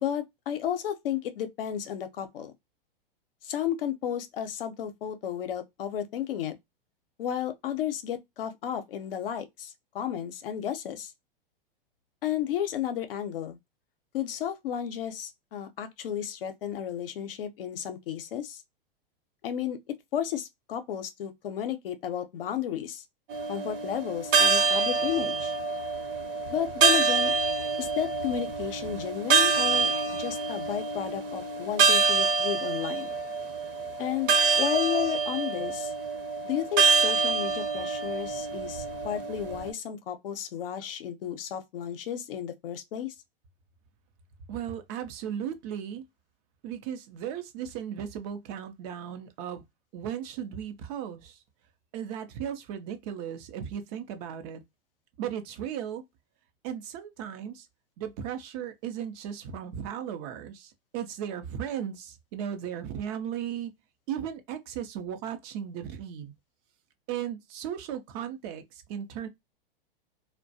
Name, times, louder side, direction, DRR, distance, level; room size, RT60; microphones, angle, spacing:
voice 1, 0.0-2.5 3.4-6.6 7.2-11.1 12.2-13.6 14.1-18.6 19.4-19.8 20.1-23.0 23.5-25.5 26.5-27.3 27.8-33.1 34.0-35.9 36.4-43.1, left 10 dB, 70° left, 0.7 m, -33 dB
sound 1, 23.3-39.7, right 4 dB, 65° right, 0.9 m, -26 dB
voice 2, 44.5-46.0 46.6-49.6 49.9-51.4 51.9-54.6 55.2-56.0 56.6-57.7 58.0-63.7 64.1-66.3 67.1-68.6 68.9-69.3, right 9 dB, 45° right, 0.6 m, -36 dB
2.3 x 2.1 x 2.6 m
hypercardioid pair, 110°, 29 cm